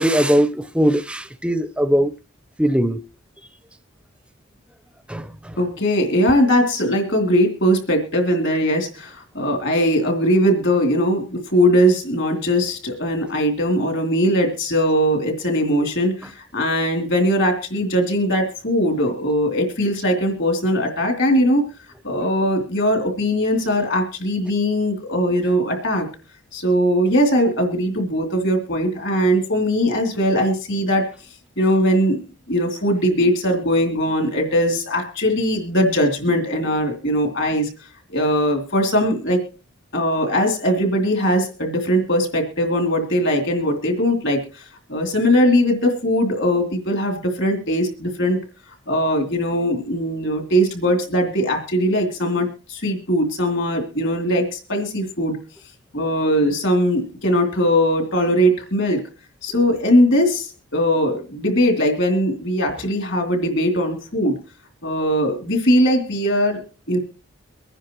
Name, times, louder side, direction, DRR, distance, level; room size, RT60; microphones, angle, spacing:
voice 1, 0.0-2.1 2.6-3.0 5.1-5.2, equal, 5° right, 0.5 m, -19 dB
voice 2, 5.6-21.7 22.0-26.1 26.5-31.1 31.6-32.2 32.5-37.7 38.1-39.4 39.9-44.6 44.9-48.4 48.9-55.4 55.9-59.0 59.4-64.4 64.8-67.0, equal, 65° left, 2.9 m, -20 dB
24.0 x 10.0 x 3.0 m
head